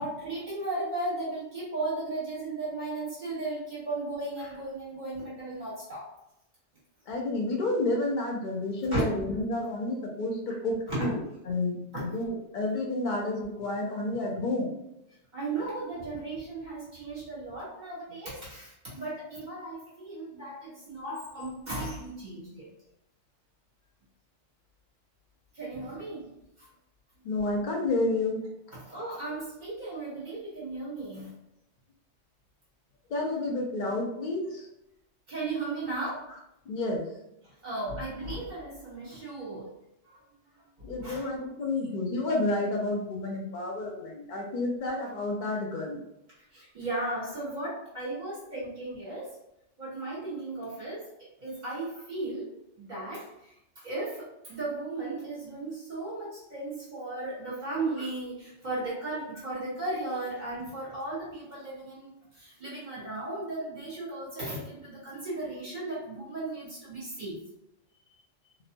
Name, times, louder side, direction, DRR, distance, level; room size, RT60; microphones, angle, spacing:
voice 1, 0.0-6.1 8.9-9.0 10.9-11.1 11.9-12.0 15.3-22.7 25.5-26.3 26.6-26.7 28.7-31.3 35.3-36.3 37.4-39.7 40.0-40.2 41.0-41.3 46.5-49.4 49.8-51.1 51.4-67.4, right 2 dB, 40° right, -8 dB, 1.4 m, -36 dB
voice 2, 7.1-11.2 11.5-14.8 27.2-28.4 33.1-34.7 36.7-37.1 40.8-46.0, left 2 dB, 50° left, 0 dB, 0.6 m, -30 dB
2.9 x 2.0 x 2.6 m, 0.83 s
omnidirectional pair, 1.3 m